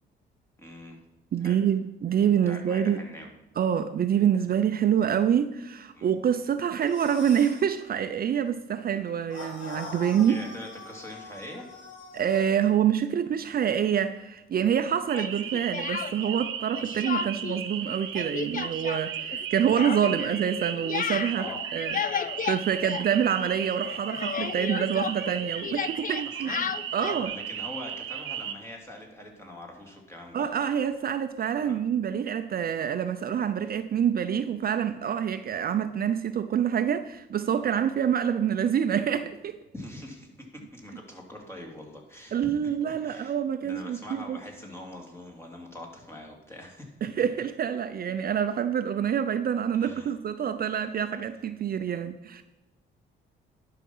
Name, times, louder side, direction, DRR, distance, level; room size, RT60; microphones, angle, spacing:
voice 1, 0.6-1.0 1.4-1.6 2.5-3.3 5.9-6.1 10.3-11.7 21.4-21.6 26.4-30.4 31.6-31.8 39.7-42.4 42.9-43.3 43.6-46.9 49.8-50.1, left 1 dB, 10° left, 2.9 m, -43 dB
voice 2, 1.3-3.0 3.6-10.4 12.1-26.5 26.9-27.3 30.3-39.6 42.3-44.4 47.0-52.4, right 8 dB, 50° right, 0.6 m, -26 dB
sound 1, 6.8-7.7 9.3-12.5, left 3 dB, 70° left, 2.0 m, -43 dB
Speech, 15.1-16.4 16.7-17.6 17.9-23.6 23.8-27.3, left 8 dB, 45° left, 0.5 m, -34 dB
sound 2, 15.1-28.5, right 9 dB, 85° right, 1.0 m, -36 dB
11.0 x 6.0 x 5.5 m
cardioid pair, 90°, 20 cm